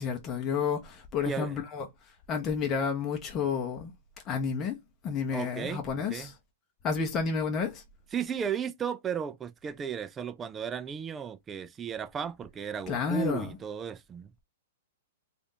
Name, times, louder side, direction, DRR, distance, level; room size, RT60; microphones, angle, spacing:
voice 1, 0.0-1.9 2.3-3.9 4.3-4.8 5.0-6.3 6.8-7.8 12.9-13.5, left 6 dB, 25° left, 0.7 m, -30 dB
voice 2, 1.2-1.6 5.3-6.3 8.1-14.3, right 7 dB, 20° right, 0.4 m, -35 dB
3.4 x 2.5 x 2.7 m
hypercardioid pair, 125°, 0 cm